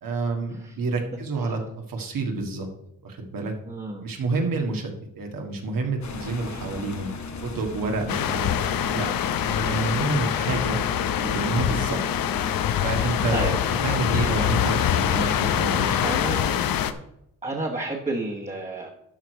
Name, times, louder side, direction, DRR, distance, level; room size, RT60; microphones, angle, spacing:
voice 1, 0.0-1.6 1.9-2.7 3.0-3.5 4.0-4.9 5.2-7.1 7.4-9.1 9.4-10.8 11.2-12.0 12.8-13.5 13.8-16.0, right 3 dB, 80° right, 2 dB, 1.7 m, -28 dB
voice 2, 3.6-4.0 13.3-13.6 16.0-16.5 17.4-18.9, right 2 dB, 20° right, -1 dB, 1.3 m, -30 dB
sound 1, 6.0-16.6, left 4 dB, 55° left, 1.1 m, -37 dB
sound 2, 8.1-16.9, left 10 dB, 90° left, 0.7 m, -24 dB
12.5 x 4.9 x 4.6 m, 0.80 s
cardioid pair, 100°, 34 cm